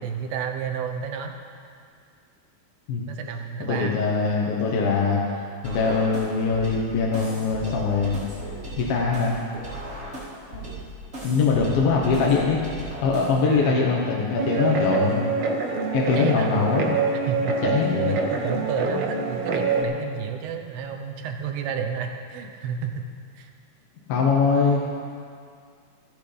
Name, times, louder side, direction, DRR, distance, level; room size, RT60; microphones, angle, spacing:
voice 1, 0.0-1.3 3.1-4.0 13.5-13.9 14.5-15.2 16.1-16.7 17.1-17.6 18.1-23.0 23.4-23.5, right 7 dB, 90° right, 5 dB, 3.0 m, -31 dB
voice 2, 3.7-8.2 8.8-9.5 10.5-10.7 11.2-12.6 13.0-15.3 15.9-16.9 17.6-18.2 24.1-24.9, left 4 dB, 70° left, -2 dB, 2.9 m, -22 dB
sound 1, 5.6-13.6, right 1 dB, 20° right, 4.0 m, -37 dB
Guitar, 14.4-19.8, right 4 dB, 70° right, 1.5 m, -25 dB
28.5 x 10.0 x 3.4 m, 2.3 s
omnidirectional pair, 4.5 m